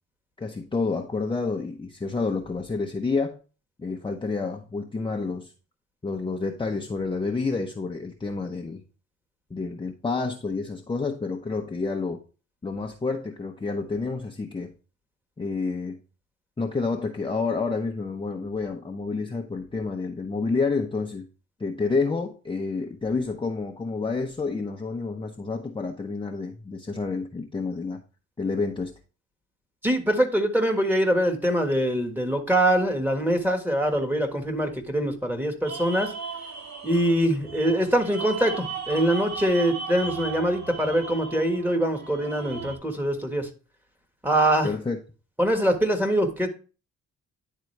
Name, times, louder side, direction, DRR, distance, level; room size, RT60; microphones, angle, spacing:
voice 1, 0.4-3.4 3.8-5.5 6.0-8.8 9.5-12.2 12.6-14.7 15.4-16.0 16.6-21.3 21.6-28.0 28.4-28.9 44.6-45.0, left 4 dB, 15° left, 2 dB, 0.8 m, -29 dB
voice 2, 29.8-36.1 36.8-43.5 44.2-44.7 45.4-46.5, right 1 dB, 5° right, 5 dB, 1.5 m, -23 dB
opera with audience, 35.6-42.8, right 5 dB, 65° right, 1.3 m, -36 dB
10.5 x 3.8 x 3.2 m, 0.35 s
cardioid pair, 90°, 30 cm